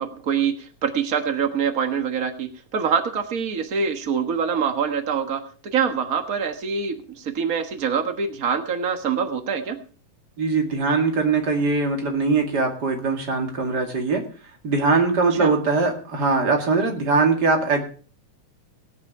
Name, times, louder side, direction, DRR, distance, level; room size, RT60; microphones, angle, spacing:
voice 1, 0.0-9.8 15.3-15.5, right 6 dB, 90° right, 7 dB, 0.7 m, -25 dB
voice 2, 10.4-14.2 14.6-17.8, right 4 dB, 35° right, 3 dB, 2.4 m, -21 dB
17.0 x 9.9 x 4.8 m, 0.41 s
omnidirectional pair, 3.8 m